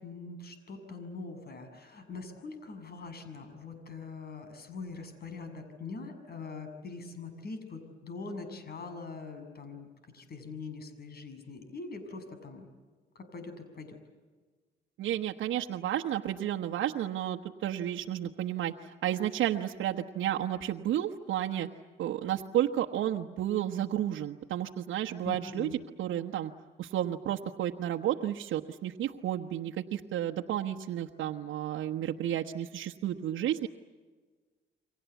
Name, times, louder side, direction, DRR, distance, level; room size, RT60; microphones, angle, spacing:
voice 1, 0.0-12.7 13.2-14.0 25.2-25.8, left 4 dB, 50° left, 8 dB, 7.0 m, -43 dB
voice 2, 15.0-21.7 22.0-25.7 26.0-26.5 26.8-33.7, right 11 dB, 80° right, 2 dB, 1.2 m, -32 dB
29.5 x 24.5 x 8.3 m, 1.4 s
cardioid pair, 90°, 20 cm